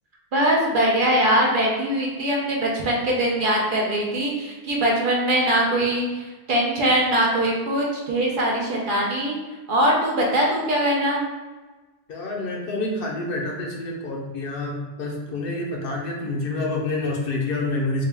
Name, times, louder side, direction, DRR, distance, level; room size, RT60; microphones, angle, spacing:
voice 1, 0.3-9.4 9.7-11.2, right 1 dB, 55° right, -2 dB, 0.8 m, -22 dB
voice 2, 12.1-18.0, left 2 dB, 65° left, -1 dB, 0.8 m, -28 dB
3.7 x 2.2 x 3.3 m, 1.2 s
omnidirectional pair, 1.1 m